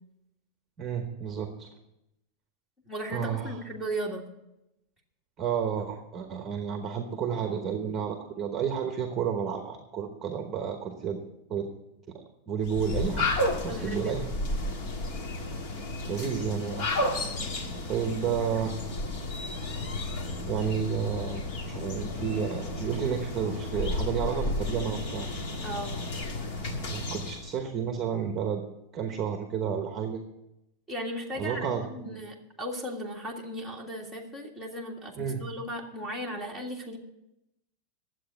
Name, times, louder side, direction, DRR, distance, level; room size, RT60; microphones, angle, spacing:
voice 1, 0.8-1.7 3.1-3.6 5.4-11.2 11.5-11.7 12.5-13.3 13.6-14.2 16.1-16.9 17.9-18.7 20.5-25.3 26.9-28.6 28.9-30.2 31.3-32.2 35.2-35.4, right 7 dB, 20° right, 5 dB, 1.1 m, -31 dB
voice 2, 2.8-4.3 13.7-14.1 25.6-26.0 30.9-37.0, right 1 dB, 5° left, 1 dB, 1.8 m, -36 dB
sound 1, 12.6-27.5, left 2 dB, 45° left, 1.8 m, -32 dB
11.5 x 7.9 x 8.1 m, 0.87 s
supercardioid pair, 165°, 0 cm